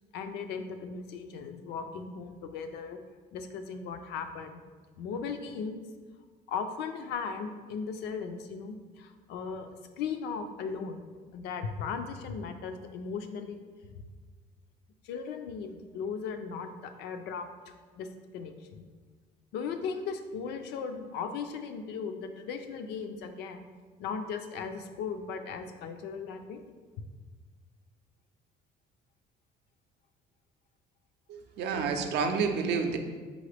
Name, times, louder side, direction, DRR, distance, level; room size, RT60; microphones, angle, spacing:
voice 1, 0.1-3.0 3.3-4.6 5.0-5.8 6.5-9.7 10.0-11.1 11.3-13.6 13.9-14.0 15.0-18.8 19.5-23.6 24.0-26.6, left 5 dB, 80° left, 7 dB, 0.4 m, -37 dB
voice 2, 31.3-33.0, right 5 dB, 80° right, 6 dB, 0.5 m, -29 dB
3.8 x 3.8 x 3.3 m, 1.5 s
cardioid pair, 110°, 17 cm